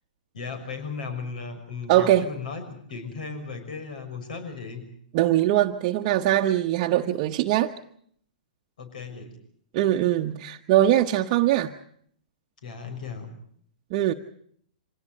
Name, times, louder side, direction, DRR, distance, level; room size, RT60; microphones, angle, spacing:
voice 1, 0.3-4.8 8.8-9.3 12.6-13.3, left 5 dB, 70° left, 8 dB, 6.1 m, -36 dB
voice 2, 1.9-2.3 5.1-7.7 9.7-11.7 13.9-14.1, right 13 dB, 40° right, 1 dB, 1.1 m, -21 dB
25.5 x 18.0 x 7.7 m, 0.65 s
hypercardioid pair, 125°, 5 cm